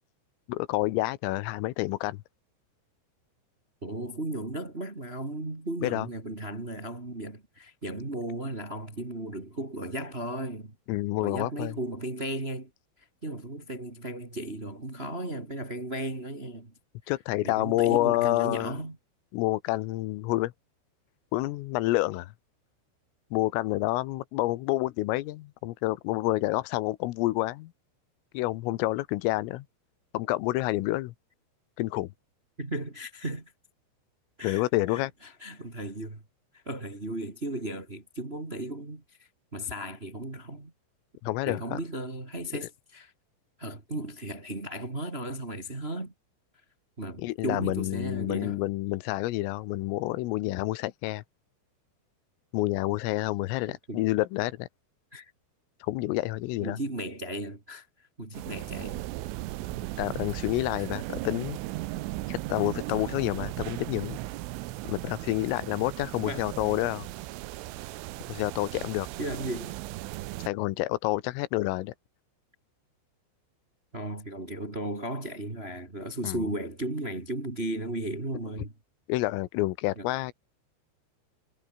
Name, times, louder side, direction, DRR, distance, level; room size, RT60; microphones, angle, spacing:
voice 1, 0.5-2.2 5.8-6.1 10.9-11.8 17.1-18.7 19.3-20.5 21.3-22.3 23.3-27.7 28.3-29.7 30.1-31.1 31.8-32.1 34.4-35.1 41.2-41.8 47.2-51.2 52.5-54.7 55.8-56.8 60.0-61.6 62.3-64.2 64.9-67.1 68.3-69.1 70.5-71.9 76.2-76.4 79.1-80.3, left 18 dB, 85° left, 3.6 m, -28 dB
voice 2, 3.8-10.7 11.2-12.7 13.2-16.7 17.4-19.0 32.6-33.5 34.4-36.2 36.5-40.7 41.4-43.1 43.6-46.1 47.0-48.6 53.7-54.0 55.1-55.3 56.6-59.0 60.8-60.9 66.2-66.5 69.2-69.7 73.9-78.7 79.9-80.1, right 1 dB, 20° right, 1.6 m, -35 dB
sound 1, 58.3-70.5, right 18 dB, 85° right, 3.5 m, -37 dB
omnidirectional pair, 5.8 m